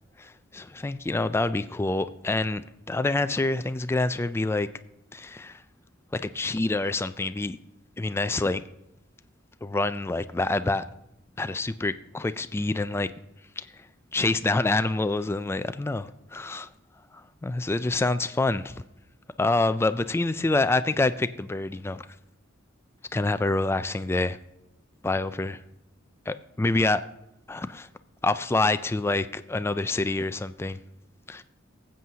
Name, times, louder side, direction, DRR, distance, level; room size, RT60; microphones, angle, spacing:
voice 1, 0.2-4.7 5.1-5.6 6.1-7.6 8.0-8.6 9.6-10.8 11.4-13.1 13.6-13.8 14.1-16.7 17.1-18.8 19.4-22.0 23.1-24.4 25.0-25.6 26.3-27.0 27.5-27.9 28.2-30.8 31.3-31.4, left 2 dB, 15° left, 0.3 m, -27 dB
19.0 x 7.6 x 2.8 m
head